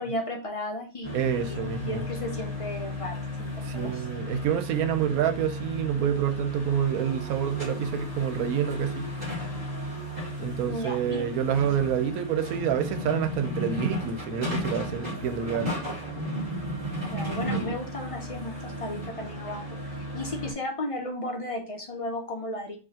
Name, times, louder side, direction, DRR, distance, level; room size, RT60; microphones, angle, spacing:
voice 1, 0.0-4.1 10.7-11.3 17.1-19.7 19.9-22.8, left 1 dB, 50° left, 0.4 m, -35 dB
sound 1, 1.0-20.5, equal, 35° right, 2.4 m, -34 dB
voice 2, 1.1-2.0 3.7-9.1 10.4-15.7, right 9 dB, 85° right, 1.0 m, -28 dB
4.9 x 2.4 x 2.7 m
omnidirectional pair, 1.5 m